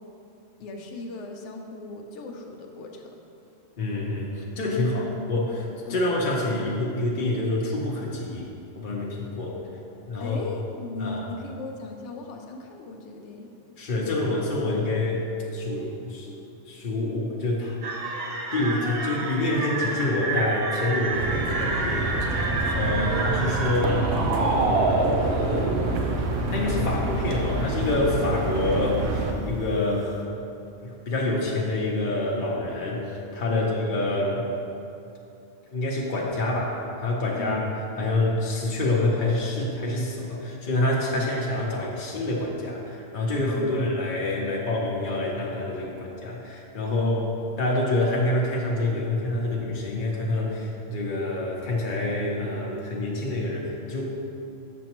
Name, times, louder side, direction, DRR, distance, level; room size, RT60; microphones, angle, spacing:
voice 1, 0.6-3.1 4.8-5.1 5.9-6.0 10.2-13.5 16.3-16.5 22.9-23.3 33.5-33.9 37.4-37.8 41.1-41.3 43.5-43.8 46.9-47.3, left 2 dB, 75° left, 2 dB, 0.9 m, -38 dB
voice 2, 3.8-8.5 8.8-9.6 10.1-10.4 11.0-11.3 13.8-15.3 15.5-16.3 16.7-17.8 18.5-25.9 26.5-30.3 30.8-34.5 35.7-37.6 38.0-47.2 47.6-54.0, left 2 dB, 50° left, -3 dB, 0.8 m, -27 dB
sound 1, 17.8-26.1, right 3 dB, 60° right, 0.8 m, -28 dB
sound 2, 21.1-29.3, right 2 dB, 85° right, 1.0 m, -28 dB
7.2 x 6.1 x 3.0 m, 2.7 s
omnidirectional pair, 1.2 m